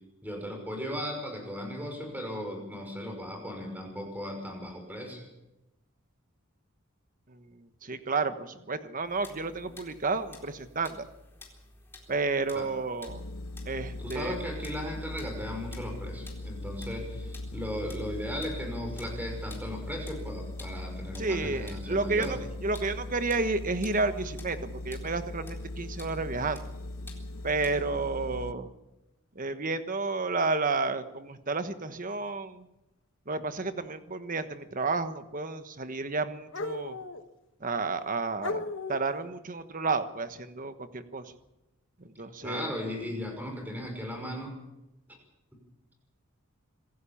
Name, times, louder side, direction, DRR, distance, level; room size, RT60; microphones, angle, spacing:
voice 1, 0.2-5.3 12.5-12.7 14.0-22.4 42.4-44.6, equal, 10° right, 3 dB, 5.6 m, -37 dB
voice 2, 7.3-11.1 12.1-13.2 13.6-14.4 21.2-26.6 27.4-28.7 29.3-32.6 33.3-37.0 37.6-41.3 42.0-42.7, right 3 dB, 40° right, 10 dB, 1.3 m, -31 dB
sound 1, 9.0-27.7, left 2 dB, 10° left, 4.2 m, -53 dB
sound 2, 13.1-28.5, left 1 dB, 75° left, 1.1 m, -39 dB
sound 3, 29.4-29.5 31.0-31.1 32.1-32.3 34.8-34.9 36.5-37.3 38.0-38.1 38.4-39.2, left 2 dB, 60° left, 1.3 m, -36 dB
26.0 x 15.0 x 7.2 m, 0.97 s
head